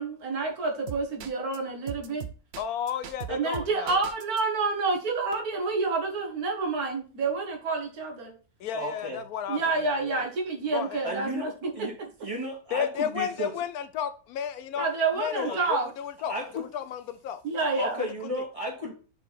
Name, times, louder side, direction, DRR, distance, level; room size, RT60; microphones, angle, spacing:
voice 1, 0.0-2.2 3.3-8.3 9.5-12.1 14.8-15.9 17.4-18.0, right 3 dB, 80° right, 2.0 m, -28 dB
sound 1, 0.9-1.6 1.9-4.4, right 9 dB, 60° right, 0.7 m, -38 dB
voice 2, 2.6-4.1 8.6-10.2 10.7-11.0 12.7-14.9 15.2-17.4, left 9 dB, 80° left, 1.1 m, -33 dB
voice 3, 8.7-9.2 10.2-10.3 11.0-11.9 12.2-13.5 14.7-14.8 15.4-15.6 16.3-16.7 17.8-18.9, equal, 20° right, 2.5 m, -34 dB
6.0 x 4.5 x 4.1 m
omnidirectional pair, 1.6 m